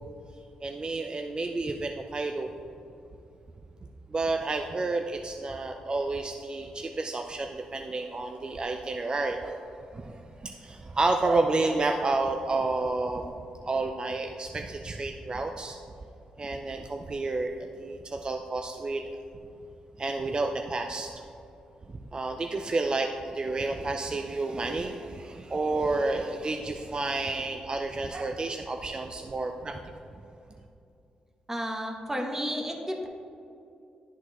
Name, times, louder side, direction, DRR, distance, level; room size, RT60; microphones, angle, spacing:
voice 1, 0.6-2.5 4.1-15.8 16.4-19.0 20.0-21.1 21.9-29.8, right 3 dB, 35° right, 4 dB, 0.4 m, -30 dB
voice 2, 31.5-33.1, equal, 15° right, 1 dB, 1.0 m, -32 dB
11.0 x 4.0 x 3.0 m, 2.6 s
supercardioid pair, 60°, 3 cm